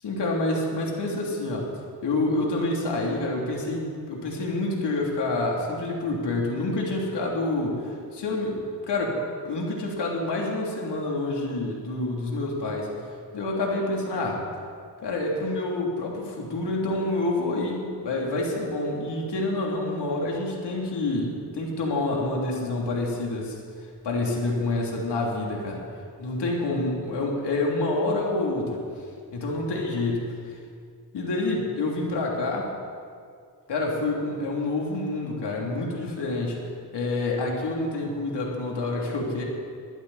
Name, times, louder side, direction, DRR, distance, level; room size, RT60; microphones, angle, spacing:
voice 1, 0.0-1.7 2.0-9.2 9.4-12.9 13.3-14.4 15.0-23.6 24.0-25.8 26.2-28.8 29.3-30.5 31.1-32.7 33.7-36.6 36.9-39.4, left 2 dB, 85° left, -2 dB, 3.2 m, -27 dB
20.5 x 15.0 x 4.3 m, 2.2 s
cardioid pair, 65°, 40 cm